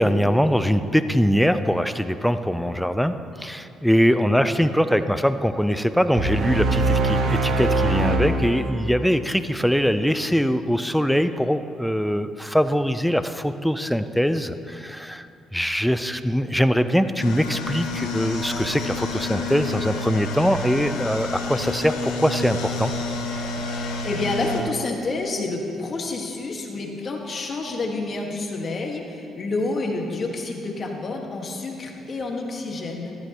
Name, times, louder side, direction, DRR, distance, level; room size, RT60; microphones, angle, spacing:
voice 1, 0.0-15.3 15.5-22.9, equal, ahead, 10 dB, 0.6 m, -22 dB
sound 1, 6.1-9.5, right 2 dB, 65° right, 1.1 m, -23 dB
sound 2, 17.2-24.6, left 3 dB, 85° left, 1.1 m, -29 dB
voice 2, 23.6-33.2, left 3 dB, 45° left, 1 dB, 1.7 m, -29 dB
13.5 x 13.0 x 3.1 m, 2.6 s
supercardioid pair, 65°, 0 cm